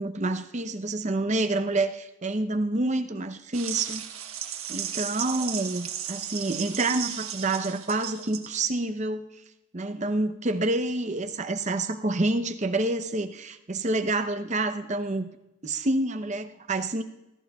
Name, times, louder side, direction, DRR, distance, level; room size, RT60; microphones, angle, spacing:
voice 1, 0.0-4.0 4.7-9.3 9.7-15.3 15.6-17.0, right 2 dB, 35° right, 9 dB, 0.7 m, -28 dB
sound 1, 3.5-8.7, right 9 dB, 80° right, 1.3 m, -35 dB
26.5 x 13.5 x 2.3 m, 0.94 s
head